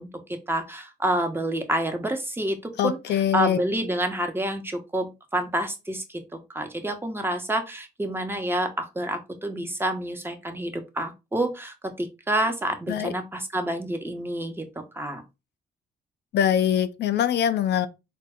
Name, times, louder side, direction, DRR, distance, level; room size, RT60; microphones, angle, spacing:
voice 1, 0.0-14.7 14.9-15.2, right 1 dB, 10° right, 0.9 m, -28 dB
voice 2, 2.8-3.6 12.9-13.1 16.3-17.9, left 9 dB, 70° left, 0.4 m, -23 dB
4.0 x 2.2 x 3.5 m
cardioid pair, 80°, 18 cm